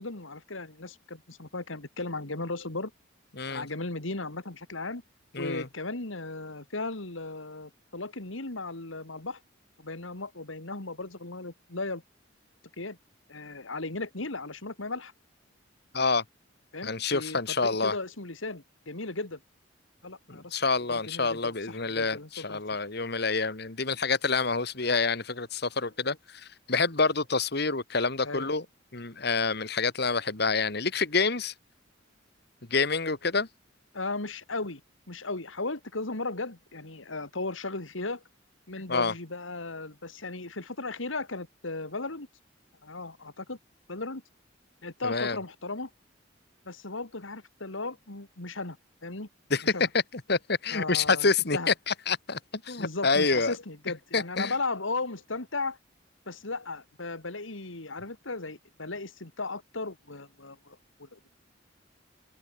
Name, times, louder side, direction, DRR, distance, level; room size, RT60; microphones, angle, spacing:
voice 1, 0.0-2.9 3.5-5.0 5.4-9.4 9.8-12.0 12.8-13.0 13.3-15.1 16.7-19.4 20.0-20.6 20.9-22.6 28.2-28.5 33.9-34.8 35.1-38.2 38.7-42.3 42.8-43.6 43.9-44.2 44.8-45.9 46.7-48.8 49.0-49.3 49.6-49.9 50.7-51.7 52.8-55.8 56.3-61.3, left 3 dB, 85° left, 2.7 m, -36 dB
voice 2, 5.3-5.7 15.9-16.2 16.8-17.9 20.3-28.7 28.9-31.5 32.7-33.5 38.9-39.1 45.0-45.4 49.5-49.7 50.1-53.5 54.1-54.5, left 4 dB, 55° left, 2.2 m, -27 dB
head